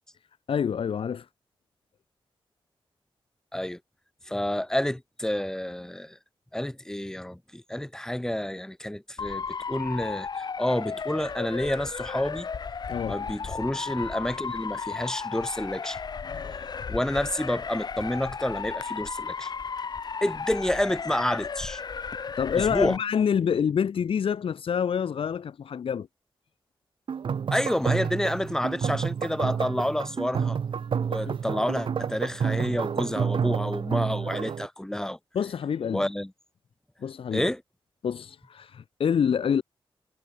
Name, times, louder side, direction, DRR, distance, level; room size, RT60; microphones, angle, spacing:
voice 1, 0.5-1.3 12.9-13.3 16.2-16.5 22.4-26.1 31.3-31.4 35.3-36.0 37.0-37.4 38.0-39.6, left 7 dB, 75° left, 4.0 m, -27 dB
voice 2, 4.2-6.2 6.5-12.5 13.1-16.0 16.6-19.5 20.2-21.8 22.6-23.0 27.5-30.6 31.1-35.2 35.9-36.3 37.3-37.6, left 1 dB, 5° left, 3.3 m, -29 dB
Motor vehicle (road) / Siren, 9.2-23.0, left 5 dB, 50° left, 2.1 m, -34 dB
sound 1, 27.1-34.7, right 7 dB, 65° right, 1.7 m, -29 dB
wide cardioid pair, 150°, 9 cm